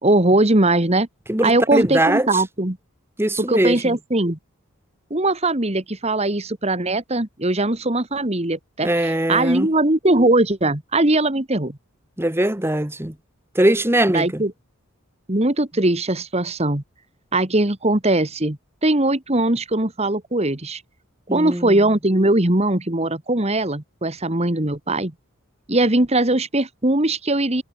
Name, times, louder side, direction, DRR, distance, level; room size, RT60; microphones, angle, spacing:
voice 1, 0.0-1.1 1.4-2.8 3.4-4.4 5.1-11.8 14.1-14.5 15.3-16.8 17.3-20.8 21.3-25.1 25.7-27.6, right 2 dB, 30° right, 1.8 m, -20 dB
voice 2, 1.3-2.4 3.2-4.0 8.8-9.7 12.2-13.1 13.5-14.4 21.3-21.8, right 1 dB, 10° right, 1.3 m, -21 dB
head